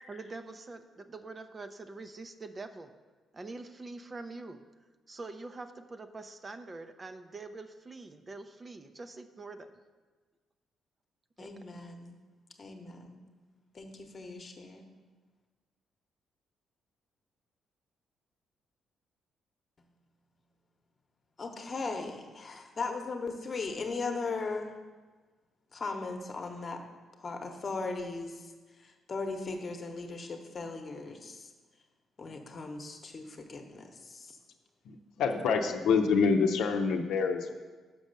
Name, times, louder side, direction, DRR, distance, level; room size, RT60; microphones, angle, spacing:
voice 1, 0.1-2.9 3.3-4.6 5.1-9.7 11.4-11.8, right 3 dB, 30° right, 9 dB, 0.5 m, -45 dB
voice 2, 11.4-12.2 12.6-13.2 13.7-14.9 21.4-24.7 25.7-26.8 27.2-28.5 28.8-31.5 32.2-34.4, left 3 dB, 40° left, 4 dB, 1.0 m, -38 dB
voice 3, 34.8-37.5, left 5 dB, 85° left, 4 dB, 0.6 m, -27 dB
6.1 x 5.2 x 6.6 m, 1.4 s
cardioid pair, 90°, 0 cm